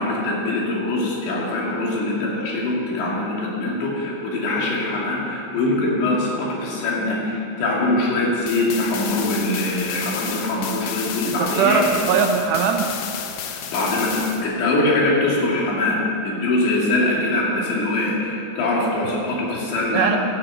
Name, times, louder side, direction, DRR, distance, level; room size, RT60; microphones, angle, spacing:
voice 1, 0.0-11.8 13.5-20.2, left 2 dB, 65° left, -4 dB, 4.7 m, -23 dB
sound 1, 8.5-14.5, left 8 dB, 80° left, 2.4 m, -32 dB
voice 2, 11.3-12.9 19.9-20.2, right 6 dB, 80° right, 4 dB, 2.5 m, -20 dB
12.5 x 10.5 x 7.9 m, 2.6 s
omnidirectional pair, 5.7 m